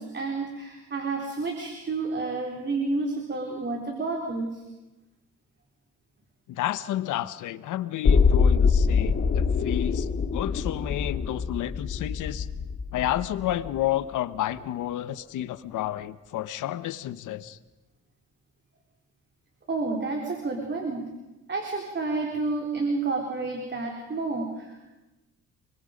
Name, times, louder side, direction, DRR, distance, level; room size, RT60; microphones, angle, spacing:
voice 1, 0.0-4.6 19.7-21.1 21.5-24.9, right 3 dB, 35° right, 1 dB, 3.8 m, -30 dB
voice 2, 6.5-12.5 12.9-17.6, left 13 dB, 85° left, 14 dB, 1.1 m, -31 dB
sound 1, 8.0-14.0 14.3-14.4, left 5 dB, 40° left, 1.8 m, -24 dB
29.5 x 22.0 x 5.3 m, 1.0 s
cardioid pair, 90°, 30 cm